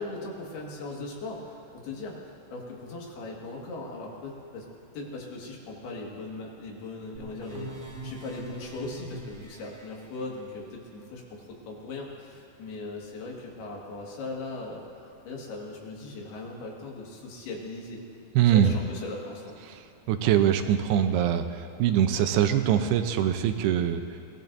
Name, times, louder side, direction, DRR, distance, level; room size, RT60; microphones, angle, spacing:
voice 1, 0.0-4.7 4.9-7.8 8.0-18.0 18.5-19.5, left 2 dB, 75° left, -2 dB, 3.8 m, -39 dB
sound 1, 7.1-9.9, right 2 dB, 50° right, 3.7 m, -42 dB
voice 2, 18.4-18.7 20.1-24.0, right 10 dB, 85° right, 7 dB, 2.6 m, -23 dB
23.5 x 18.0 x 2.6 m, 2.9 s
omnidirectional pair, 4.6 m